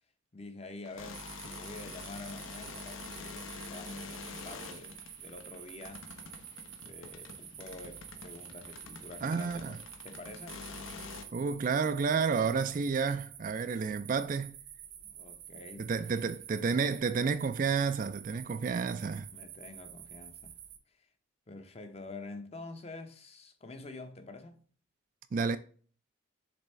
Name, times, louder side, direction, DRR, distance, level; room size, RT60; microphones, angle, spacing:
voice 1, 0.3-6.1 6.7-10.6 15.0-16.1 19.3-20.6 20.9-21.1 21.5-24.7, left 2 dB, 30° left, 0.7 m, -47 dB
sound 1, 0.9-11.2, left 4 dB, 75° left, 0.9 m, -46 dB
sound 2, 1.1-20.8, right 10 dB, 55° right, 0.8 m, -49 dB
voice 2, 9.2-9.7 11.3-14.5 15.8-19.3 25.3-25.6, right 5 dB, 40° right, 0.3 m, -30 dB
6.9 x 3.5 x 4.2 m
head